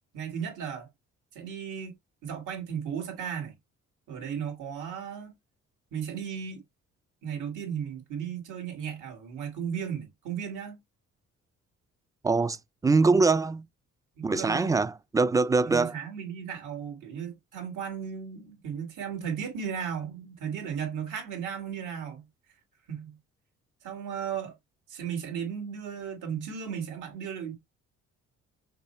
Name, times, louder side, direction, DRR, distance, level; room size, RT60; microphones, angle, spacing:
voice 1, 0.1-0.9 1.3-1.9 2.2-3.5 4.1-5.3 5.9-6.6 7.2-10.8 14.2-14.8 15.6-22.3 22.9-23.2 23.8-24.5 24.9-27.5, right 7 dB, 85° right, 2.2 m, -35 dB
voice 2, 12.2-12.6 12.8-13.7 14.2-15.9, right 3 dB, 10° right, 0.3 m, -23 dB
5.8 x 2.1 x 4.3 m
cardioid pair, 90°, 30 cm